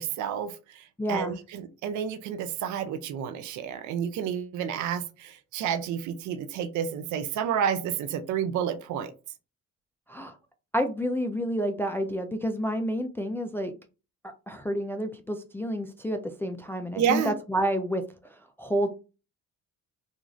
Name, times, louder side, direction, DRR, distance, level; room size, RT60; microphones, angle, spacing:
voice 1, 0.0-9.1 17.0-17.3, right 8 dB, 75° right, 10 dB, 0.4 m, -30 dB
voice 2, 1.0-1.4 10.1-10.4 10.7-13.7 14.2-18.0 18.6-18.9, equal, 10° left, 5 dB, 0.3 m, -29 dB
2.5 x 2.5 x 3.0 m, 0.32 s
cardioid pair, 90°, 30 cm